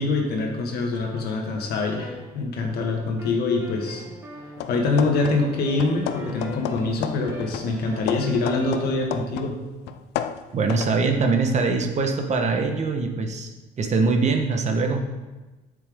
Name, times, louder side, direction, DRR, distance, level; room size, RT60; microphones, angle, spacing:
voice 1, 0.0-4.1 4.7-9.6, left 3 dB, 70° left, 1 dB, 1.8 m, -25 dB
sound 1, 0.9-2.8 3.2-9.0, equal, 15° right, 1.7 m, -42 dB
sound 2, 4.6-5.5 5.8-9.6 9.9-11.0, left 10 dB, 85° left, 0.5 m, -32 dB
voice 2, 10.5-13.5 13.8-15.0, right 4 dB, 45° right, 4 dB, 1.1 m, -22 dB
9.9 x 7.1 x 3.6 m, 1.2 s
cardioid pair, 110°, 17 cm